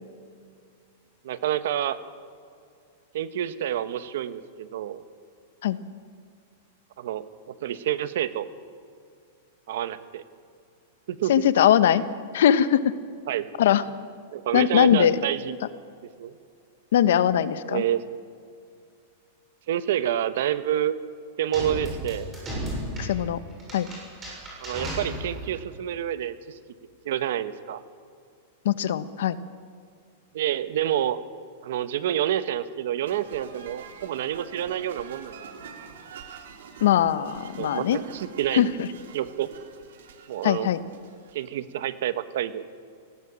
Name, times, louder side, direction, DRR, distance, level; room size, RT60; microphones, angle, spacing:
voice 1, 1.2-2.0 3.1-5.0 7.0-7.2 7.6-8.5 9.7-10.2 11.1-11.3 13.3-13.5 14.3-15.6 16.2-16.3 17.7-18.0 19.7-20.9 21.4-22.3 24.6-26.6 27.0-27.8 30.3-31.2 31.6-35.3 37.6-38.7 39.1-39.5 40.3-40.7 41.3-42.6, right 11 dB, 65° right, 12 dB, 1.2 m, -28 dB
voice 2, 11.3-12.0 12.3-12.9 13.6-13.8 14.5-15.2 16.9-17.8 23.0-23.4 23.7-23.9 28.6-29.4 36.8-38.0 38.5-38.9 40.4-40.8, left 10 dB, 70° left, 13 dB, 1.0 m, -21 dB
sound 1, 21.5-25.6, equal, 15° right, 7.1 m, -34 dB
sound 2, 33.0-41.6, right 6 dB, 80° right, 3.0 m, -46 dB
18.5 x 16.5 x 8.8 m, 2.3 s
supercardioid pair, 170°, 0 cm